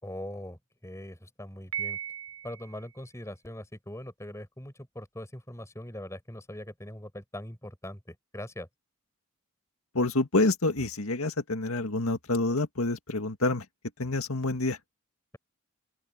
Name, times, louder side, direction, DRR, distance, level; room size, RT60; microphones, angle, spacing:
voice 1, 0.0-2.0 2.4-8.7, left 1 dB, 15° left, 4.5 m, -41 dB
Piano, 1.7-2.8, right 9 dB, 75° right, 5.8 m, -36 dB
voice 2, 9.9-13.7 14.0-14.8, left 2 dB, 75° left, 2.1 m, -27 dB
open air
head